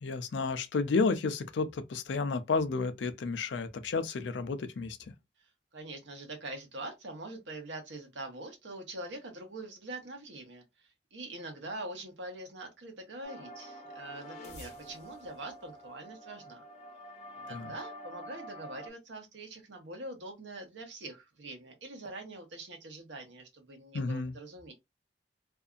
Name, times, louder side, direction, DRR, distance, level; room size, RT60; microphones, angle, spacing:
voice 1, 0.0-5.0 17.5-17.7 23.9-24.3, left 4 dB, 75° left, 0.4 m, -31 dB
voice 2, 5.4-16.6 17.4-24.7, right 2 dB, 85° right, 1.0 m, -44 dB
sound 1, 13.2-18.9, equal, 40° left, 0.8 m, -47 dB
2.7 x 2.4 x 2.3 m
head